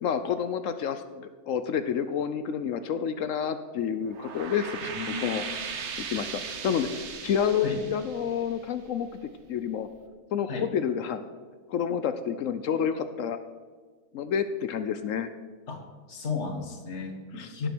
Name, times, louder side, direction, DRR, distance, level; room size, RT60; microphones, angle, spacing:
voice 1, 0.0-4.9 5.2-5.4 6.1-9.1 9.5-9.9 10.3-11.2 11.7-13.4 14.1-15.3 17.4-17.7, left 7 dB, 70° left, 11 dB, 1.0 m, -29 dB
sound 1, 4.0-9.2, right 6 dB, 55° right, 1.2 m, -38 dB
voice 2, 4.8-5.4 7.6-7.8 10.5-10.7 15.7-15.8 16.1-17.7, left 4 dB, 55° left, 4 dB, 1.8 m, -34 dB
17.0 x 6.6 x 6.1 m, 1.5 s
omnidirectional pair, 1.5 m